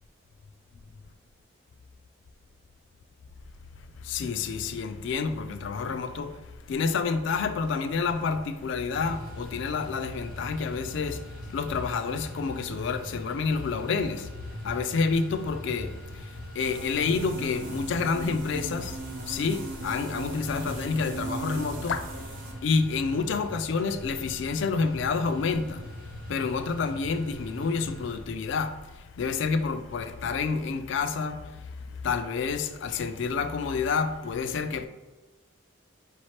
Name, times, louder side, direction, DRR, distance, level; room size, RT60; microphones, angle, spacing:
voice 1, 4.0-6.4 6.7-11.2 11.5-14.3 14.6-19.0 19.3-22.1 22.6-25.9 26.3-28.7 29.2-31.5 32.0-34.9, left 4 dB, 60° left, 0.3 m, -28 dB
sound 1, 8.9-28.2, equal, 45° right, 0.6 m, -42 dB
sound 2, 16.6-22.5, right 2 dB, 75° right, 1.0 m, -38 dB
4.9 x 2.9 x 3.1 m
head